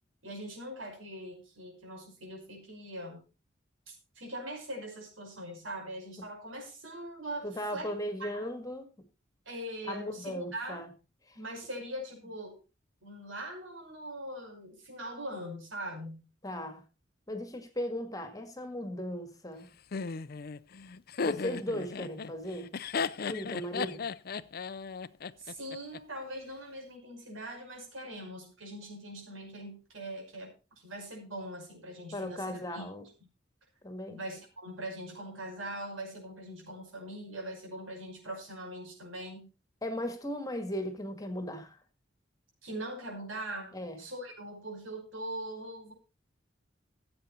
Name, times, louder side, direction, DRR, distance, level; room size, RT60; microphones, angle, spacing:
voice 1, 0.2-3.2 3.9-7.9 8.2-8.5 9.5-10.8 11.3-12.6 13.0-16.2 25.4-32.8 34.1-39.5 42.6-45.9, right 1 dB, 90° right, 5.8 m, -42 dB
voice 2, 7.4-8.9 9.9-10.9 11.3-11.4 16.4-16.8 17.3-19.7 21.2-22.7 23.3-24.0 32.1-33.1 33.8-34.2 39.8-41.8 43.7-44.0, equal, 20° left, 1.8 m, -37 dB
Laughter, 19.9-26.0, left 5 dB, 50° left, 0.5 m, -35 dB
15.5 x 8.0 x 4.3 m
head